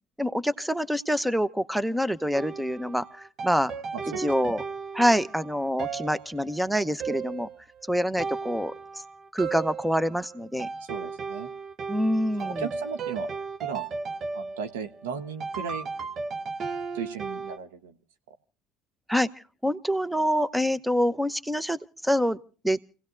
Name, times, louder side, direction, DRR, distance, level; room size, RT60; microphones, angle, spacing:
voice 1, 0.2-3.0 3.4-3.7 4.2-4.6 4.9-7.5 7.9-8.7 9.3-10.7 11.9-12.7 19.1-19.3 19.6-21.8 22.0-22.4 22.6-22.8, equal, 5° right, 15 dB, 1.0 m, -26 dB
sound 1, 2.3-17.6, right 4 dB, 50° right, 1.0 m, -35 dB
voice 2, 10.9-11.5 12.4-13.3 13.6-13.8 14.3-15.9 16.9-17.9, right 7 dB, 85° right, 7 dB, 1.3 m, -36 dB
29.0 x 17.5 x 2.6 m, 0.38 s
hypercardioid pair, 70°, 0 cm